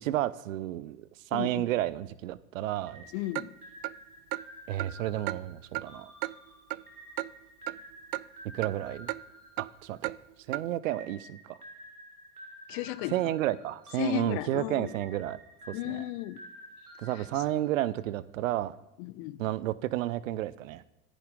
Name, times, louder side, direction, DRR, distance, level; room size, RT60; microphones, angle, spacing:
voice 1, 0.0-3.1 4.7-6.1 8.5-9.1 9.6-10.1 10.5-11.6 13.1-15.4 15.7-16.0 17.0-18.7 19.4-20.8, right 14 dB, 60° right, 19 dB, 0.8 m, -31 dB
voice 2, 1.3-1.7 3.1-3.5 12.7-13.1 14.0-14.9 15.7-16.4 19.0-19.4, left 16 dB, 45° left, 16 dB, 0.9 m, -34 dB
sound 1, 2.9-10.3 10.9-18.1, equal, 85° right, 2.7 m, -51 dB
Clock, 3.4-3.5 3.8-3.9 4.3-4.4 4.8-4.9 5.3-5.4 5.7-5.9 6.2-6.3 6.7-6.8 7.2-7.3 7.7-7.8 8.1-8.2 8.6-8.7 9.1-9.2 9.6-9.7 10.0-10.2 10.5-10.6, right 20 dB, 45° right, 0.4 m, -33 dB
25.0 x 10.0 x 3.8 m, 0.93 s
figure-of-eight pair, 75°, 44 cm